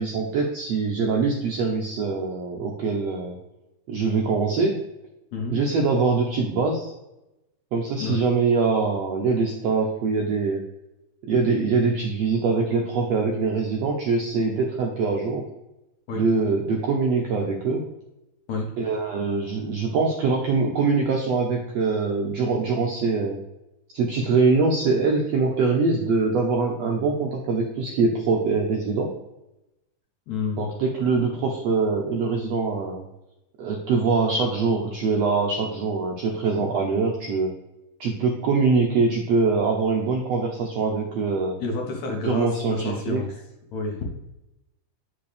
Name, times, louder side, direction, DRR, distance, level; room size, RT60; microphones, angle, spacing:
voice 1, 0.0-3.3 3.9-4.8 5.5-6.9 7.7-10.6 11.3-15.4 16.1-17.8 18.8-23.4 23.9-29.1 30.6-33.0 33.6-37.5 38.0-41.6 42.2-43.2, right 4 dB, 75° right, 0 dB, 1.5 m, -23 dB
voice 2, 30.3-30.7 31.1-31.3 41.6-43.3 43.7-44.1, left 4 dB, 65° left, 1 dB, 2.1 m, -30 dB
8.7 x 5.6 x 3.3 m, 0.91 s
omnidirectional pair, 4.1 m